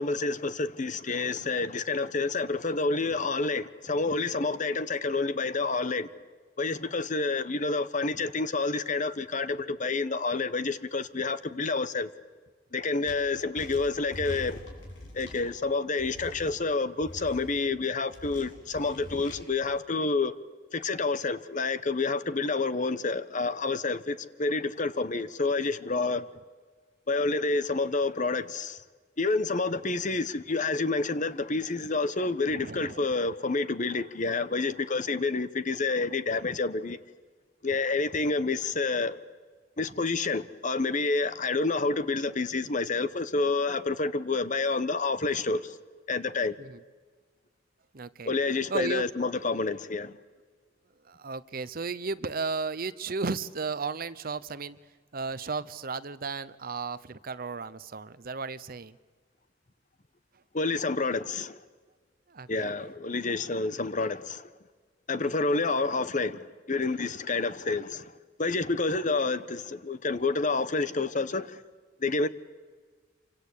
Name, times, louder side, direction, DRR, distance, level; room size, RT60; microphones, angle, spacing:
voice 1, 0.0-6.1 6.6-12.1 12.7-14.6 15.1-20.3 20.7-26.2 27.1-28.8 29.2-37.0 37.6-39.2 39.8-45.8 46.1-46.5 48.2-50.2 60.5-61.6 62.5-64.4 65.1-68.1 68.4-71.6 72.0-72.3, left 3 dB, 40° left, 1.1 m, -29 dB
sound 1, 13.1-13.2 13.6-15.5 16.0-16.5 17.0-17.6 18.1-19.4, left 1 dB, 85° left, 7.9 m, -43 dB
voice 2, 32.5-33.0 46.6-46.8 47.9-48.3 48.7-49.0 51.0-54.8 55.1-59.0 62.3-62.7, right 4 dB, 50° right, 0.8 m, -34 dB
28.0 x 25.0 x 8.5 m
head